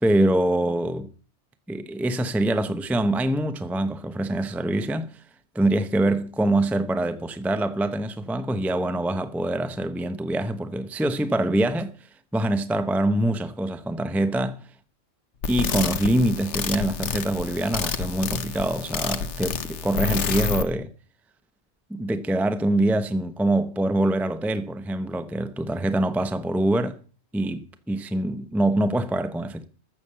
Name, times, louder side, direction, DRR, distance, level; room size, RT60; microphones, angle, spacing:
voice 1, 0.0-1.1 1.7-5.2 5.5-11.9 12.3-14.6 15.5-20.9 21.9-27.0 27.3-29.7, right 1 dB, ahead, 0.7 m, -24 dB
sound 1, 15.4-20.6, left 6 dB, 85° left, 1.3 m, -28 dB
13.5 x 7.2 x 7.4 m
omnidirectional pair, 1.2 m